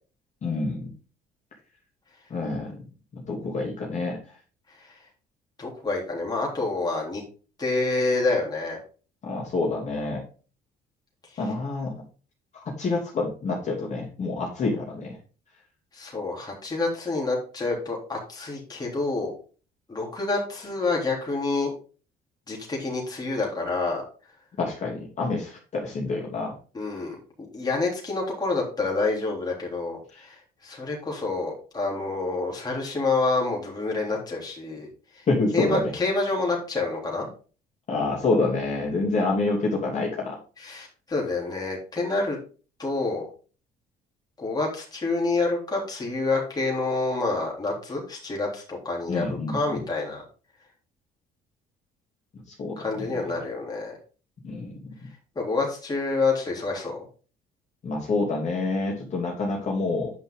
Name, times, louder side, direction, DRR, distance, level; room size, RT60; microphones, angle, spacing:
voice 1, 0.4-0.9 2.3-2.8 3.1-4.2 9.2-10.2 11.4-11.9 12.6-15.2 24.6-26.5 35.3-35.9 37.9-40.4 49.1-49.8 52.5-53.1 54.4-54.8 57.8-60.1, left 3 dB, 45° left, -3 dB, 3.2 m, -27 dB
voice 2, 5.6-7.2 7.6-8.8 11.3-11.4 15.9-19.3 19.9-21.7 22.5-24.0 26.7-27.2 27.5-34.9 35.2-35.3 35.5-37.3 40.6-42.4 42.8-43.3 44.4-50.2 52.8-54.0 55.4-57.1, left 3 dB, 25° left, -2 dB, 3.5 m, -28 dB
9.2 x 5.8 x 3.8 m, 0.37 s
cardioid pair, 110°, 17 cm